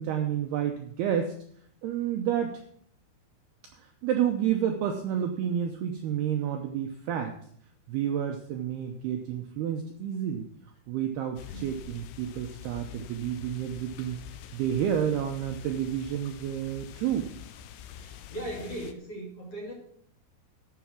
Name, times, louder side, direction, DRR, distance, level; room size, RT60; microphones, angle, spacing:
voice 1, 0.0-1.3 1.8-2.6 3.7-7.4 7.9-10.5 10.9-17.3, right 9 dB, 80° right, 4 dB, 2.4 m, -30 dB
sound 1, 11.4-18.9, left 10 dB, 80° left, 3.0 m, -46 dB
voice 2, 18.0-19.7, right 1 dB, 35° left, 0 dB, 2.9 m, -38 dB
12.0 x 7.1 x 6.0 m, 0.64 s
omnidirectional pair, 5.6 m